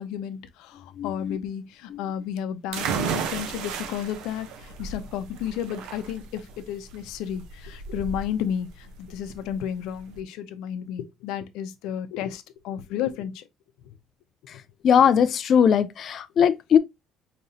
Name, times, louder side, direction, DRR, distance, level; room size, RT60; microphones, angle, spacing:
voice 1, 0.0-13.4 15.1-15.2, left 9 dB, 85° left, 0.6 m, -32 dB
voice 2, 1.0-1.4 1.9-2.0 14.8-16.8, left 8 dB, 40° left, 0.4 m, -20 dB
sound 1, 2.7-10.2, right 6 dB, 90° right, 0.7 m, -34 dB
5.2 x 2.9 x 2.7 m
cardioid pair, 170°, 0 cm